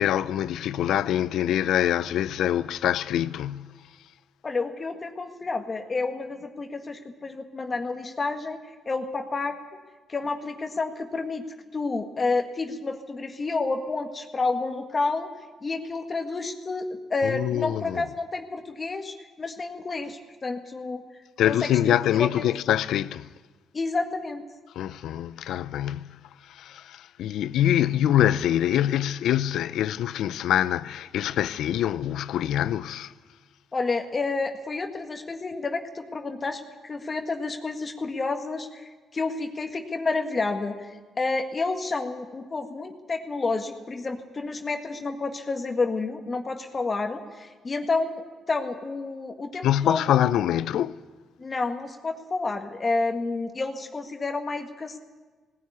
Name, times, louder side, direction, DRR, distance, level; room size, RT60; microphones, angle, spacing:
voice 1, 0.0-3.7 17.2-18.0 21.4-23.3 24.8-26.2 26.5-33.1 49.6-51.0, left 11 dB, 80° left, 0.5 m, -25 dB
voice 2, 4.4-9.6 10.1-11.5 11.7-15.3 15.6-21.0 21.5-22.4 23.7-24.4 33.7-50.3 51.4-55.0, left 3 dB, 30° left, 1.7 m, -30 dB
18.0 x 16.0 x 9.6 m
cardioid pair, 90°, 0 cm